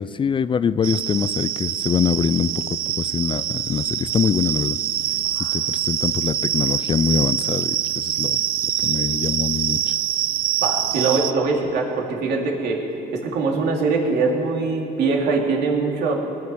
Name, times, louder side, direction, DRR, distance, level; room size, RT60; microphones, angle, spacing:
voice 1, 0.0-4.8 5.5-8.4 8.8-10.0, left 7 dB, 30° left, 16 dB, 0.4 m, -24 dB
sound 1, 0.8-11.3, right 11 dB, 60° right, 0.7 m, -24 dB
voice 2, 10.6-12.8 13.1-16.1, right 4 dB, 75° right, 0 dB, 2.9 m, -22 dB
20.5 x 9.6 x 7.0 m, 2.7 s
cardioid pair, 110°, 17 cm